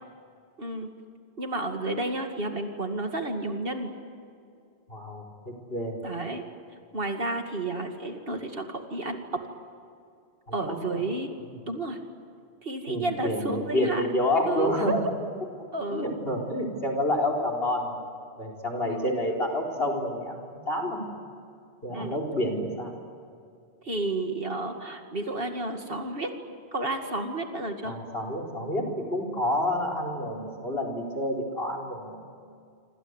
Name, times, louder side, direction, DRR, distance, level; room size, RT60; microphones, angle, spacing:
voice 1, 0.6-0.9 1.4-3.9 6.0-6.4 6.9-9.4 10.5-11.3 11.7-12.0 12.6-14.0 14.5-15.1 15.7-16.1 18.9-19.1 21.9-22.2 23.8-26.3 26.7-28.0, right 2 dB, 55° right, 4 dB, 2.6 m, -31 dB
voice 2, 4.9-6.0 10.5-11.0 12.9-15.1 15.9-18.0 18.4-21.0 21.8-22.9 27.8-32.2, left 1 dB, 60° left, 3 dB, 4.7 m, -29 dB
27.0 x 26.5 x 8.2 m, 2.3 s
omnidirectional pair, 1.1 m